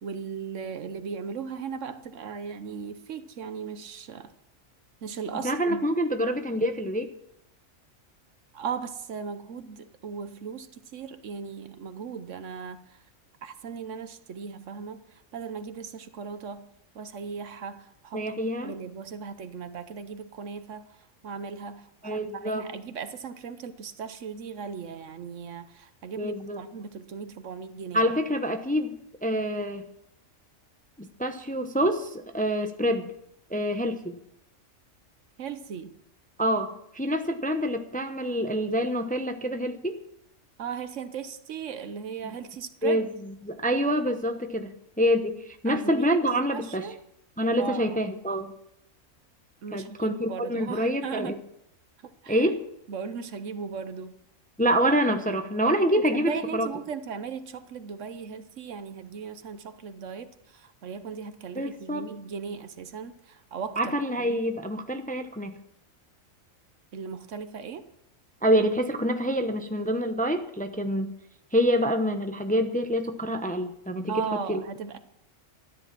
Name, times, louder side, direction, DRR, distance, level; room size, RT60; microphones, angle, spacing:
voice 1, 0.0-4.3 5.0-5.8 8.5-13.0 13.4-16.7 16.9-18.2 18.6-28.0 35.4-35.9 40.6-43.1 45.6-46.2 46.5-47.0 47.4-48.1 49.6-51.3 52.2-52.5 52.9-54.2 56.1-64.4 66.9-67.8 74.1-75.0, right 6 dB, 70° right, 11 dB, 1.2 m, -37 dB
voice 2, 5.4-7.1 18.1-18.7 22.0-22.6 26.2-26.6 27.9-29.8 31.0-33.1 33.5-34.2 36.4-40.0 42.2-42.3 42.8-43.1 43.4-44.7 45.0-46.9 47.4-48.5 49.7-51.3 52.3-52.6 54.6-56.7 61.6-62.1 63.8-65.5 68.4-71.1 71.5-74.6, equal, 10° left, 6 dB, 0.7 m, -26 dB
13.0 x 10.0 x 5.9 m, 0.77 s
omnidirectional pair, 1.4 m